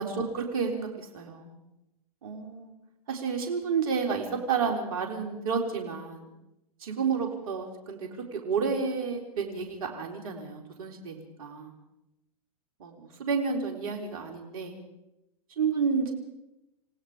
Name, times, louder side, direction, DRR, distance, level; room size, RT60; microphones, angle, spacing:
voice 1, 0.0-1.5 2.2-2.7 3.1-6.3 6.8-11.7 12.8-14.8 15.6-16.1, right 5 dB, 65° right, 3 dB, 4.2 m, -31 dB
29.5 x 17.5 x 5.1 m, 0.91 s
hypercardioid pair, 115°, 19 cm